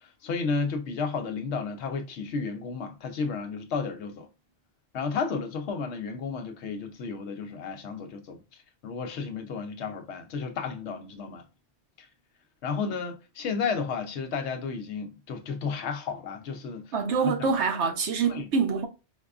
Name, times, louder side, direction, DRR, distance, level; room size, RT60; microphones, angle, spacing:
voice 1, 0.0-4.3 4.9-8.4 8.8-11.5 12.0-12.1 12.6-16.9 17.2-17.5 18.3-18.4, left 5 dB, 80° left, 0.9 m, -32 dB
voice 2, 16.9-18.9, right 5 dB, 80° right, 1.0 m, -25 dB
4.6 x 2.2 x 2.3 m
omnidirectional pair, 1.1 m